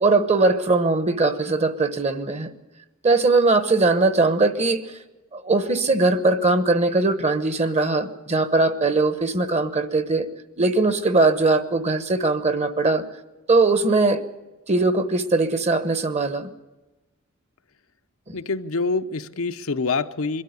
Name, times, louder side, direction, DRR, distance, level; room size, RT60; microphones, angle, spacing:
voice 1, 0.0-2.5 3.0-4.8 5.3-10.3 10.6-13.0 13.5-14.2 14.7-16.5 18.3-18.4, right 3 dB, 30° right, 11 dB, 1.0 m, -20 dB
voice 2, 18.3-20.4, left 4 dB, 70° left, 9 dB, 0.7 m, -26 dB
22.5 x 13.0 x 9.6 m, 1.1 s
head